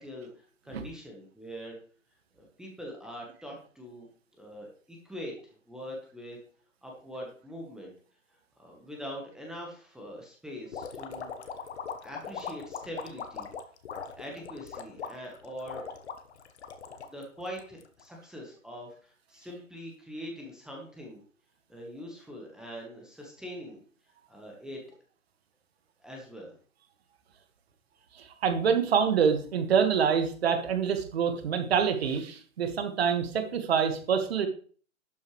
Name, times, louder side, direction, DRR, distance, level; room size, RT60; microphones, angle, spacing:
voice 1, 0.0-1.8 2.3-4.1 4.4-6.4 6.8-7.9 8.6-11.5 12.0-13.5 14.2-15.8 16.9-21.2 21.7-23.8 24.3-24.9 26.0-26.5, equal, ahead, -1 dB, 1.4 m, -43 dB
sound 1, 10.7-18.0, left 6 dB, 50° left, 1.4 m, -40 dB
voice 2, 28.2-34.5, right 7 dB, 45° right, 7 dB, 1.9 m, -26 dB
12.0 x 8.3 x 3.3 m, 0.43 s
figure-of-eight pair, 135°, 41 cm